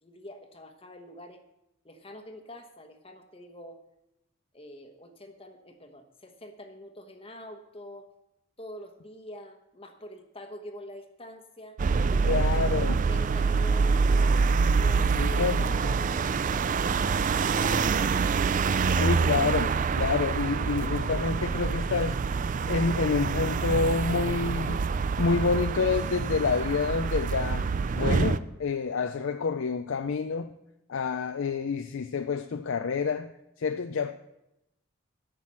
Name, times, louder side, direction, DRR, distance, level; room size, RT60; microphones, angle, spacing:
voice 1, 0.0-1.4 1.8-3.8 4.5-8.1 8.6-11.8 12.1-14.4 14.8-19.1, left 1 dB, 25° left, 1.1 m, -45 dB
sound 1, 11.8-28.4, right 5 dB, 35° right, 0.3 m, -26 dB
voice 2, 12.3-13.0 15.2-15.6 18.9-22.2 22.7-24.9 25.2-30.5 30.9-33.3 33.6-34.1, left 5 dB, 60° left, 0.4 m, -28 dB
12.0 x 6.1 x 7.5 m
head